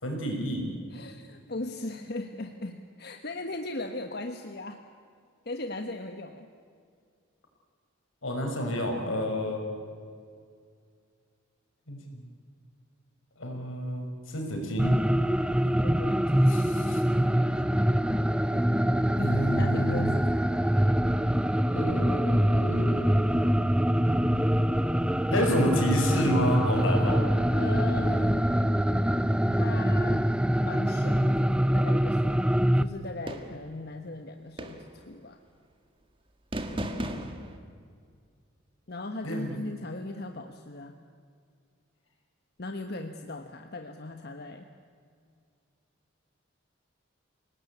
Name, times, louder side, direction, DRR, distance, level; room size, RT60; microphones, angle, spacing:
voice 1, 0.0-0.7 8.2-9.6 11.9-12.2 13.4-14.9 15.6-15.9 16.5-17.0 19.1-20.1 21.7-23.2 25.3-27.2 39.2-39.5, equal, 85° left, 2 dB, 5.9 m, -30 dB
voice 2, 0.9-4.8 5.4-6.5 15.8-16.2 19.6-20.7 27.5-28.5 29.5-30.3 30.6-32.5 32.8-35.4 38.9-41.0 42.6-44.7, left 2 dB, 55° left, 5 dB, 1.3 m, -38 dB
sound 1, 14.8-32.8, equal, 5° right, 0.6 m, -24 dB
sound 2, 33.3-33.7 34.6-35.1 36.5-37.6, right 1 dB, 25° right, 1.8 m, -35 dB
28.5 x 19.0 x 8.6 m, 2.2 s
head